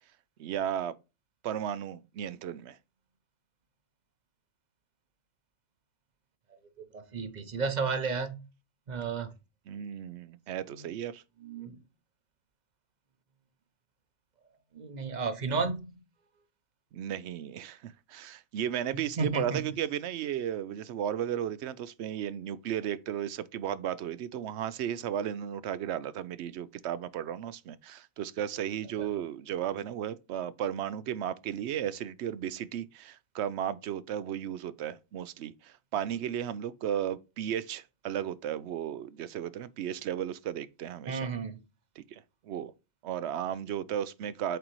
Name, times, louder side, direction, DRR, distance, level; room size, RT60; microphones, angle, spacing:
voice 1, 0.4-1.0 1.4-2.8 9.7-11.2 16.9-41.3 42.0-42.7 43.0-44.6, right 10 dB, 85° right, 0.9 m, -34 dB
voice 2, 6.8-8.4 8.9-9.3 10.8-10.9 11.4-11.8 14.7-16.0 19.2-19.7 29.0-29.1 41.1-41.6, right 4 dB, 45° right, 0.8 m, -33 dB
8.0 x 3.9 x 3.0 m
omnidirectional pair, 1.1 m